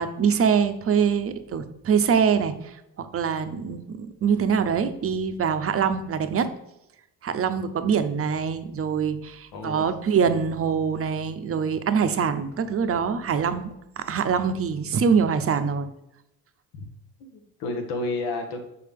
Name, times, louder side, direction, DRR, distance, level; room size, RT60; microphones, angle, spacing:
voice 1, 0.0-6.5 7.2-15.9, right 6 dB, 35° right, 9 dB, 0.6 m, -24 dB
voice 2, 9.5-9.9 16.7-16.8 17.2-18.6, left 2 dB, 85° left, 4 dB, 1.2 m, -31 dB
6.6 x 4.2 x 3.5 m, 0.87 s
cardioid pair, 85°, 38 cm